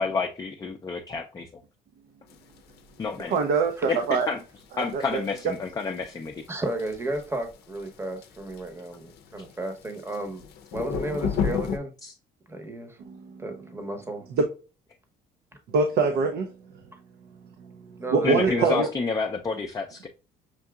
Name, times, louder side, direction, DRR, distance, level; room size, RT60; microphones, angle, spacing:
voice 1, 0.0-1.6 3.0-3.4 3.9-4.4 4.8-6.4 12.0-12.1 18.2-20.1, left 4 dB, 20° left, 3 dB, 0.5 m, -29 dB
sound 1, 2.3-11.8, left 6 dB, 75° left, 0.6 m, -35 dB
voice 2, 3.3-4.3 4.9-5.2 13.0-13.4 14.4-14.5 15.7-16.5 17.6-17.7 18.1-18.9, right 4 dB, 70° right, 5 dB, 0.6 m, -24 dB
voice 3, 6.5-10.4 10.7-11.9 12.5-13.0 13.4-14.2 18.0-18.9, right 1 dB, 15° right, 6 dB, 0.9 m, -32 dB
5.9 x 2.7 x 2.3 m, 0.33 s
cardioid pair, 110°, 17 cm